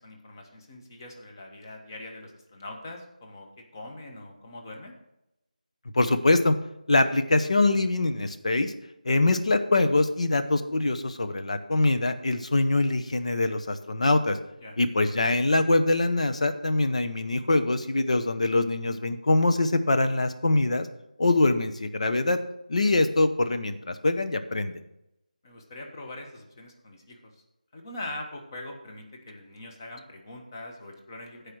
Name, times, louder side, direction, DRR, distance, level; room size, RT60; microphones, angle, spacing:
voice 1, 0.0-4.9 9.0-9.2 14.6-14.8 25.4-27.3 27.7-31.5, left 1 dB, 25° left, 2 dB, 1.3 m, -42 dB
voice 2, 5.9-6.6 6.9-8.7 9.0-14.4 14.8-20.9 21.2-22.4 22.7-24.8, left 2 dB, 50° left, 9 dB, 0.9 m, -23 dB
15.0 x 5.0 x 4.6 m, 0.87 s
figure-of-eight pair, 170°, 4 cm